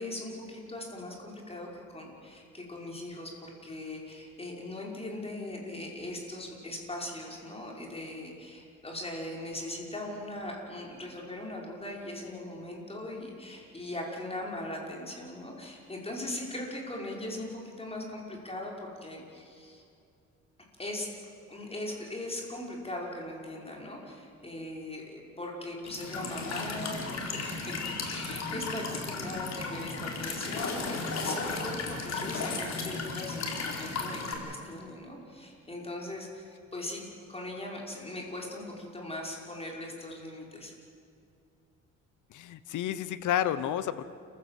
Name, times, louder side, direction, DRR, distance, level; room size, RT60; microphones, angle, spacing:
voice 1, 0.0-19.8 20.8-21.1 21.5-27.7 28.0-40.7, left 1 dB, 20° left, -1 dB, 5.6 m, -40 dB
Walk footsteps / Chirp tweet / Stream, 25.9-34.3, left 3 dB, 60° left, 4.2 m, -35 dB
voice 2, 42.3-44.1, left 11 dB, 80° left, 14 dB, 1.1 m, -30 dB
29.5 x 15.5 x 7.6 m, 2.5 s
cardioid pair, 90°, 30 cm